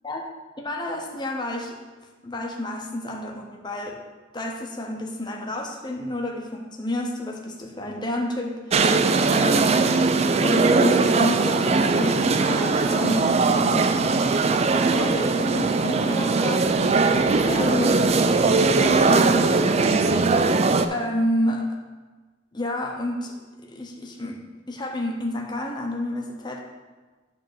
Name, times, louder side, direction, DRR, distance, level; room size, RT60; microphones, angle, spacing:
voice 1, 0.6-1.8 2.2-4.0 4.3-9.9 10.4-19.5 20.9-21.8 22.5-23.3 23.6-24.4 24.7-26.6, left 1 dB, 25° left, 1 dB, 1.0 m, -30 dB
sound 1, 8.7-20.9, right 3 dB, 35° right, 0.4 m, -20 dB
9.3 x 3.7 x 6.6 m, 1.3 s
head